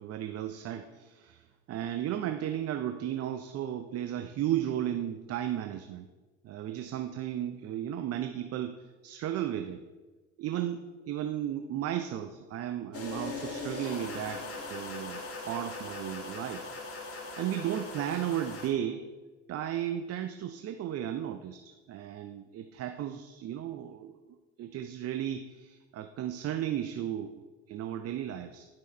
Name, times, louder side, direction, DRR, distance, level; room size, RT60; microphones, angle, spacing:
voice 1, 0.0-1.4 1.7-6.1 6.4-9.8 10.4-14.4 14.7-16.6 17.4-19.0 19.5-24.2 24.6-27.4 27.7-28.7, right 11 dB, 45° right, 7 dB, 0.7 m, -34 dB
sound 1, 12.9-18.7, left 3 dB, 40° left, 2.0 m, -40 dB
10.5 x 6.3 x 4.4 m, 1.2 s
hypercardioid pair, 65°, 35 cm